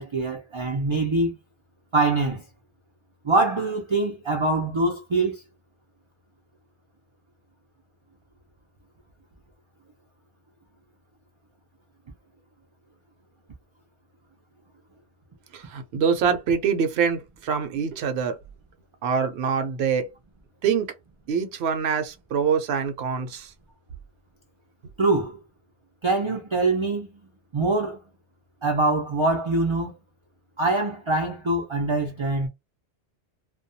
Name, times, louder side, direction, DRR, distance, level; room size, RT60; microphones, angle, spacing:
voice 1, 0.0-1.3 1.9-2.4 3.2-5.4 25.0-25.4 26.0-27.1 27.5-28.0 28.6-29.9 30.6-32.5, right 2 dB, 50° right, 0.3 m, -24 dB
voice 2, 15.5-18.4 19.0-20.1 20.6-20.9 21.3-23.5, right 6 dB, 70° right, 0.8 m, -25 dB
2.2 x 2.2 x 2.7 m
omnidirectional pair, 1.1 m